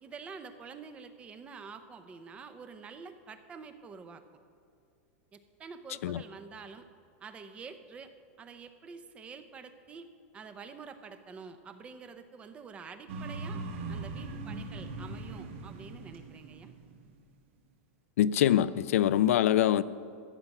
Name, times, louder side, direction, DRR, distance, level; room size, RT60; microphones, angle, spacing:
voice 1, 0.0-4.2 5.3-6.9 7.2-8.1 8.4-10.1 10.3-13.6 13.9-16.7, right 5 dB, 15° right, 9 dB, 0.6 m, -47 dB
sound 1, 13.1-17.2, right 3 dB, 60° right, 1.3 m, -40 dB
voice 2, 18.2-19.8, left 11 dB, 75° left, 15 dB, 0.4 m, -24 dB
14.0 x 6.0 x 8.9 m, 2.3 s
supercardioid pair, 160°, 8 cm